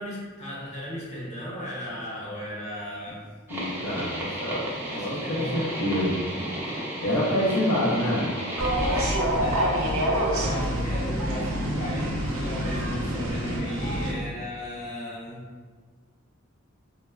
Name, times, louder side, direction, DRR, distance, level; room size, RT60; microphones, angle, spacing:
voice 1, 0.0-3.3 4.9-5.6 8.1-8.2 9.4-10.0 10.4-15.4, equal, 35° left, -7 dB, 0.7 m, -36 dB
voice 2, 3.5-6.2 7.0-8.3, left 1 dB, 85° left, -8 dB, 0.5 m, -27 dB
sound 1, 3.5-9.1, right 1 dB, 10° right, 0.5 m, -33 dB
sound 2, 8.6-14.1, equal, 90° right, 0.5 m, -26 dB
3.2 x 2.1 x 2.3 m, 1.5 s
head